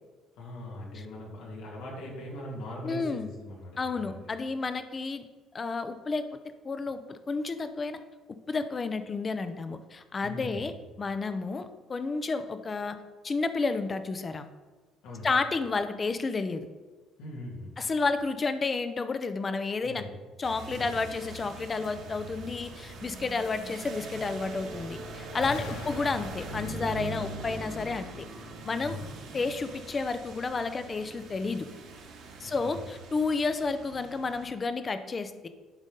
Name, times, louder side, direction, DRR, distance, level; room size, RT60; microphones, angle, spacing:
voice 1, 0.4-4.2 10.2-10.7 15.0-15.4 17.2-17.8 19.8-20.2 20.7-21.1 25.5-25.8 27.0-27.2 28.8-29.1 32.4-32.8, left 1 dB, 90° left, -3 dB, 2.7 m, -41 dB
voice 2, 2.8-3.3 3.8-5.2 5.5-6.3 6.6-8.0 8.5-10.7 11.0-13.0 13.2-14.5 15.2-16.7 17.8-20.0 20.4-28.2 28.6-29.0 29.3-31.7 32.4-35.5, left 4 dB, 25° left, 10 dB, 0.6 m, -31 dB
sound 1, 20.4-34.5, right 3 dB, 75° right, 1.9 m, -42 dB
sound 2, 25.4-29.4, left 6 dB, 70° left, 0.5 m, -45 dB
11.5 x 3.9 x 5.3 m, 1.3 s
cardioid pair, 125°, 0 cm